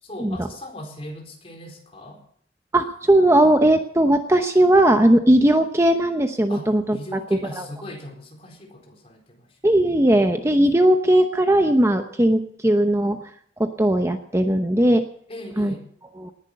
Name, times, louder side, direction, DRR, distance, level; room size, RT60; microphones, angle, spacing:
voice 1, 0.0-2.2 6.5-9.7 15.3-15.8, left 1 dB, 35° left, 1 dB, 4.3 m, -39 dB
voice 2, 2.7-7.0 7.6-7.7 9.6-13.2 13.6-15.0 15.6-15.7 16.2-16.3, right 1 dB, 15° right, 6 dB, 0.9 m, -18 dB
19.5 x 10.5 x 6.7 m, 0.63 s
head